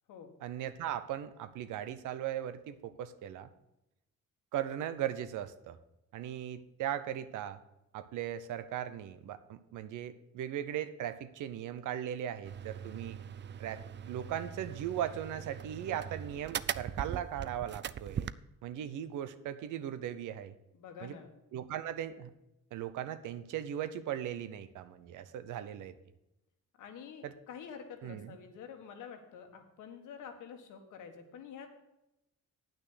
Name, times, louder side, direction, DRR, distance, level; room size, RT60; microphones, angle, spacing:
voice 1, 0.4-3.5 4.5-5.8 6.1-7.6 7.9-13.2 13.6-13.8 14.1-18.3 18.6-20.6 21.0-21.1 21.5-22.3 22.7-26.0 27.2-27.3 28.0-28.4, right 10 dB, 85° right, 12 dB, 0.9 m, -38 dB
sound 1, 12.4-18.3, right 9 dB, 40° right, 0.4 m, -41 dB
voice 2, 20.7-21.3 26.8-31.7, left 7 dB, 85° left, 5 dB, 1.7 m, -48 dB
9.0 x 6.3 x 7.9 m, 0.90 s
cardioid pair, 90°, 30 cm